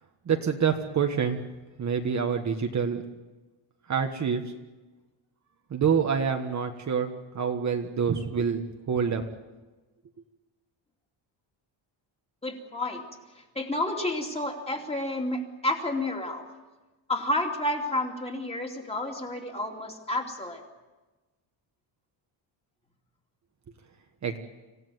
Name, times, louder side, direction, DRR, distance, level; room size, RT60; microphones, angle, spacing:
voice 1, 0.3-1.4 1.8-3.0 3.9-4.4 5.7-9.2 24.2-24.4, right 6 dB, 35° right, 4 dB, 1.4 m, -27 dB
voice 2, 12.4-13.0 13.5-16.5 17.1-20.6, left 1 dB, 10° left, 2 dB, 2.7 m, -30 dB
26.5 x 16.5 x 9.4 m, 1.2 s
cardioid pair, 170°, 49 cm